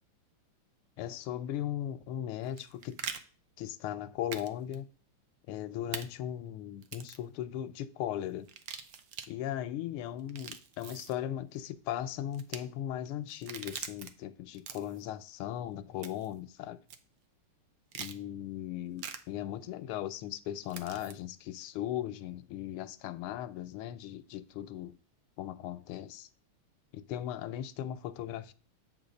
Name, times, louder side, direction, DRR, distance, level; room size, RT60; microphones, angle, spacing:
voice 1, 1.0-3.0 3.6-4.8 5.5-8.5 9.3-16.8 17.9-25.0 25.4-26.3 26.9-28.5, left 11 dB, 85° left, 1.5 m, -38 dB
sound 1, 2.4-3.2 4.3-4.5 4.7-4.8 5.9-6.0 6.8-7.2 8.4-9.3 10.2-11.1 12.3-12.6 13.3-14.1 14.5-15.0 16.0-16.3 16.9-17.0 17.9-18.2 19.0-19.2 20.7-21.1, right 7 dB, 70° right, 0.8 m, -42 dB
7.7 x 4.0 x 5.1 m
omnidirectional pair, 2.4 m